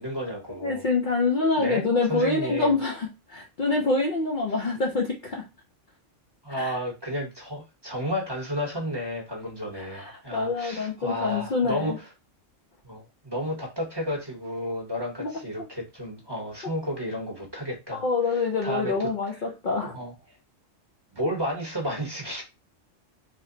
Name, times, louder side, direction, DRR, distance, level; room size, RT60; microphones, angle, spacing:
voice 1, 0.0-0.9 1.6-2.8 6.4-12.1 12.8-19.4 19.9-20.1 21.1-22.4, equal, 20° right, -1 dB, 0.9 m, -32 dB
voice 2, 0.6-5.4 6.6-6.7 9.8-12.0 15.2-15.3 17.9-20.0, left 3 dB, 55° left, 0 dB, 0.6 m, -26 dB
3.0 x 2.1 x 3.7 m, 0.26 s
omnidirectional pair, 1.3 m